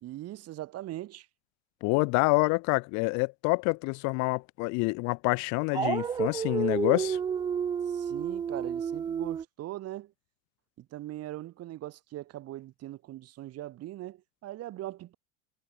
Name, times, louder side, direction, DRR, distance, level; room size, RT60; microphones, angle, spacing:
voice 1, 0.0-1.3 7.9-10.1 10.8-15.1, right 15 dB, 40° right, 3.3 m, -40 dB
voice 2, 1.8-7.2, left 29 dB, 45° left, 1.1 m, -27 dB
Dog, 5.7-9.4, right 7 dB, 10° right, 0.4 m, -30 dB
hypercardioid pair, 90°, 38 cm